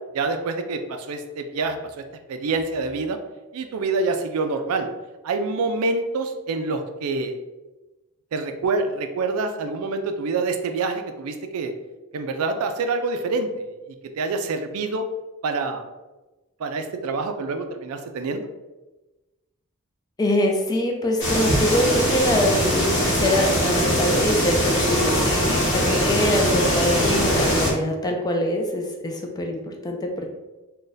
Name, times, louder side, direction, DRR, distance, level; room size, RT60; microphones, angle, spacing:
voice 1, 0.1-1.8 2.3-3.2 3.5-4.9 5.2-7.4 8.3-11.7 12.1-13.5 14.2-15.1 15.4-15.9 16.6-18.5, right 3 dB, 85° right, 7 dB, 0.4 m, -26 dB
voice 2, 20.2-25.2 25.7-30.3, left 1 dB, 20° left, 2 dB, 0.3 m, -24 dB
sound 1, 21.2-27.7, equal, 60° left, 1.1 m, -21 dB
2.5 x 2.2 x 3.9 m, 1.1 s
head